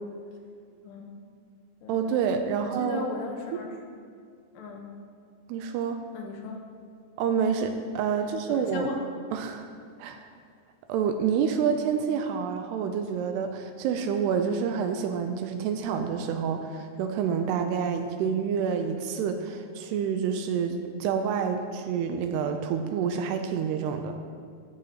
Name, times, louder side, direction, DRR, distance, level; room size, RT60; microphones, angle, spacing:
voice 1, 1.9-3.1 3.5-3.6 5.5-6.0 7.2-8.9 9.3-9.7 10.0-10.2 10.9-24.1, right 7 dB, 85° right, 6 dB, 2.6 m, -28 dB
voice 2, 2.6-3.7 4.5-4.9 6.1-6.6 8.5-9.0, left 4 dB, 75° left, 1 dB, 3.2 m, -37 dB
14.0 x 13.0 x 3.0 m, 2.1 s
omnidirectional pair, 5.0 m